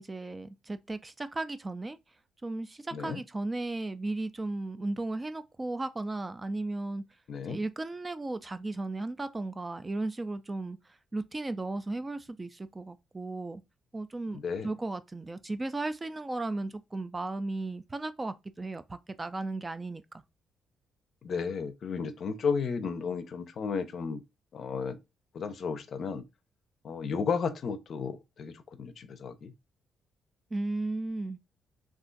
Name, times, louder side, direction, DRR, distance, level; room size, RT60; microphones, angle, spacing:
voice 1, 0.0-2.0 2.4-7.0 7.5-13.6 13.9-20.2 30.5-31.4, right 2 dB, 20° right, 0.3 m, -35 dB
voice 2, 7.3-7.6 14.3-14.7 21.2-24.2 24.5-25.0 25.3-26.2 26.8-29.5, left 5 dB, 55° left, 0.5 m, -33 dB
2.5 x 2.4 x 3.8 m
cardioid pair, 90°, 0 cm